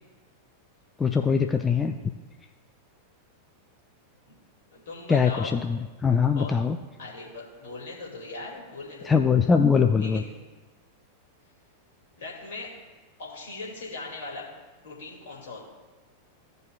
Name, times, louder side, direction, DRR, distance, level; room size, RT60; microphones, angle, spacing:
voice 1, 1.0-1.9 5.1-6.8 9.1-10.2, left 6 dB, 15° left, 5 dB, 0.4 m, -22 dB
voice 2, 4.7-5.6 6.3-6.5 7.0-9.1 10.0-10.3 12.2-12.7 13.2-14.4 14.8-15.7, left 3 dB, 60° left, -2 dB, 2.3 m, -39 dB
15.5 x 5.3 x 2.3 m, 1.3 s
figure-of-eight pair, 90°, 0 cm